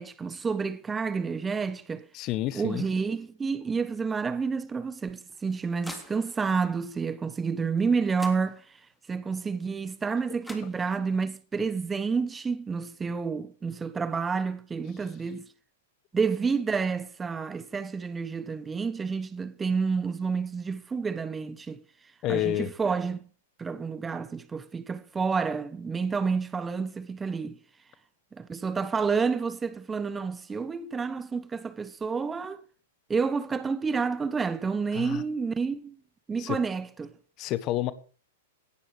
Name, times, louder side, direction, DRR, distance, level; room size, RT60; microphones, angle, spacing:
voice 1, 0.0-2.1 2.5-8.8 9.1-15.5 16.1-21.8 22.3-23.2 23.6-27.6 28.4-32.6 33.1-36.0 36.3-37.1, right 5 dB, 15° right, 1.1 m, -29 dB
voice 2, 2.1-2.8 22.2-22.7 34.9-35.2 36.4-36.6 37.4-37.9, left 14 dB, 40° left, 1.4 m, -29 dB
sound 1, 5.0-6.6 7.8-7.9 8.1-9.0 10.1-10.2 10.4-11.3, left 1 dB, 5° left, 3.3 m, -47 dB
18.0 x 12.0 x 4.9 m
hypercardioid pair, 110°, 0 cm